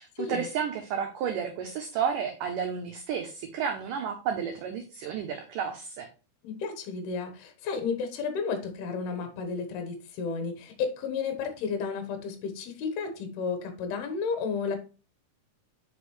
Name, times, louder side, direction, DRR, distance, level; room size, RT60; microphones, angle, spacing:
voice 1, 0.0-6.1, right 7 dB, 90° right, 3 dB, 1.8 m, -32 dB
voice 2, 6.4-14.8, left 5 dB, 75° left, 7 dB, 3.1 m, -32 dB
8.0 x 5.3 x 3.2 m, 0.34 s
omnidirectional pair, 4.7 m